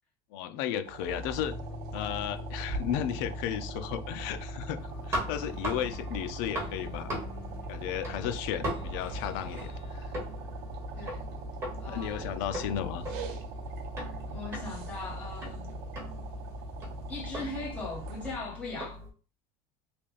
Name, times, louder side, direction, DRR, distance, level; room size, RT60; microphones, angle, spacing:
voice 1, 0.3-1.6 1.9-7.2 7.7-10.1 11.9-13.1, left 10 dB, 70° left, 0.5 m, -34 dB
sound 1, 0.8-18.3, right 2 dB, 80° right, 0.7 m, -40 dB
sound 2, 1.4-17.2, left 3 dB, 85° left, 1.8 m, -49 dB
sound 3, 4.8-19.1, equal, 25° right, 1.4 m, -40 dB
voice 2, 11.8-12.4 14.3-15.7 17.1-19.0, left 3 dB, 10° left, 1.2 m, -39 dB
3.4 x 2.4 x 3.9 m
cardioid pair, 180°, 12 cm